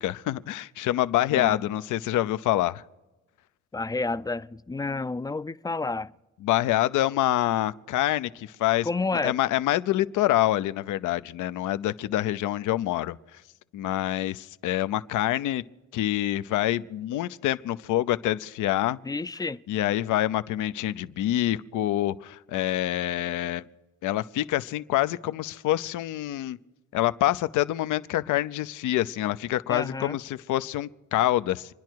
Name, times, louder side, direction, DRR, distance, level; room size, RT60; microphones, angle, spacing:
voice 1, 0.0-2.8 6.4-8.9 9.2-13.2 13.7-15.6 15.9-19.0 19.7-23.6 24.0-26.6 26.9-31.7, left 14 dB, 85° left, 0.7 m, -26 dB
voice 2, 3.7-6.1 8.8-9.4 19.0-19.6 29.7-30.2, left 3 dB, 15° left, 0.4 m, -30 dB
27.5 x 10.5 x 4.6 m
cardioid pair, 90°, 30 cm